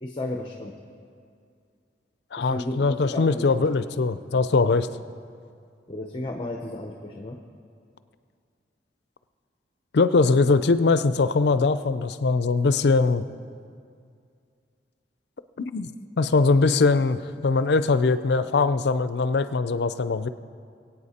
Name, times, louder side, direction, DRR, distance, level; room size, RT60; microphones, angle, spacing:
voice 1, 0.0-0.7 2.4-3.6 5.9-7.4, left 1 dB, 25° left, 3 dB, 0.7 m, -33 dB
voice 2, 2.3-4.9 9.9-13.2 15.7-15.9 16.2-20.3, left 3 dB, 65° left, 13 dB, 0.5 m, -21 dB
22.5 x 8.6 x 4.2 m, 2.3 s
head